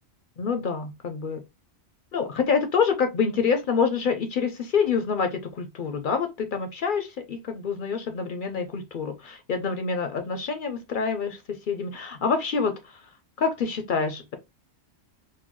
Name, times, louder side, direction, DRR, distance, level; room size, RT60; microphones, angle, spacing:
voice 1, 0.4-1.4 2.1-13.0 13.4-14.4, left 5 dB, 60° left, 0.5 m, -27 dB
3.8 x 2.2 x 3.0 m
omnidirectional pair, 1.2 m